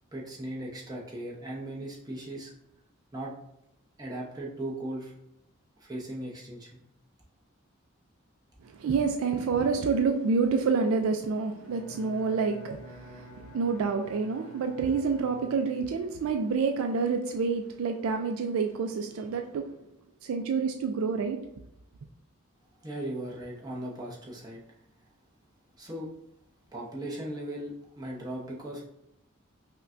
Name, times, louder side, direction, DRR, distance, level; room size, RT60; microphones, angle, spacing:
voice 1, 0.1-2.5 3.1-3.3 4.0-5.1 5.8-6.8 22.8-24.6 25.8-26.1 26.7-28.8, right 1 dB, 20° right, -4 dB, 0.8 m, -38 dB
voice 2, 8.8-19.7 20.2-21.4, right 5 dB, 80° right, 5 dB, 0.3 m, -28 dB
Bowed string instrument, 11.6-15.8, equal, 80° left, 0.8 m, -49 dB
5.4 x 2.2 x 2.5 m, 0.79 s
head